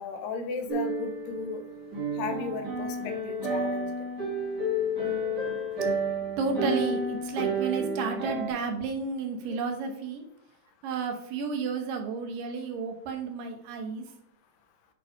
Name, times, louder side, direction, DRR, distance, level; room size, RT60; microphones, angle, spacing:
voice 1, 0.0-1.6 2.2-3.9 9.4-9.6, left 4 dB, 80° left, 7 dB, 2.4 m, -35 dB
sound 1, 0.7-8.5, right 1 dB, 35° right, 1.9 m, -31 dB
voice 2, 6.4-10.2 10.8-14.0, right 4 dB, 75° right, 4 dB, 2.5 m, -32 dB
8.8 x 3.9 x 4.6 m, 0.70 s
omnidirectional pair, 4.0 m